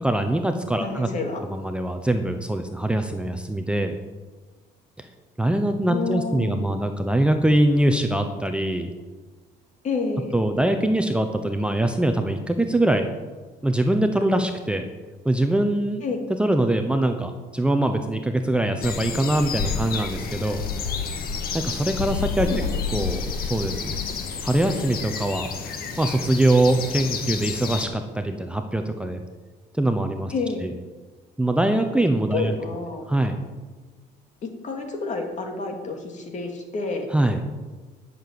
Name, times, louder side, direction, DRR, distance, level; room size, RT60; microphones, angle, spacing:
voice 1, 0.0-1.1 1.5-3.9 5.0-5.1 5.4-8.9 10.3-13.1 13.6-14.8 15.2-16.0 16.4-20.6 21.5-22.5 22.9-24.0 24.4-25.5 26.0-29.2 29.7-30.3 30.6-30.7 31.4-32.5 33.1-33.4 37.1-37.4, right 1 dB, 5° right, 6 dB, 0.8 m, -23 dB
voice 2, 0.8-1.4 5.9-6.6 9.8-10.3 16.0-16.2 22.4-23.2 30.3-30.7 32.3-33.0 34.4-37.1, left 4 dB, 45° left, 3 dB, 2.5 m, -29 dB
sound 1, 18.8-27.9, left 5 dB, 60° left, 1.8 m, -30 dB
11.0 x 7.0 x 7.7 m, 1.3 s
cardioid pair, 110°, 17 cm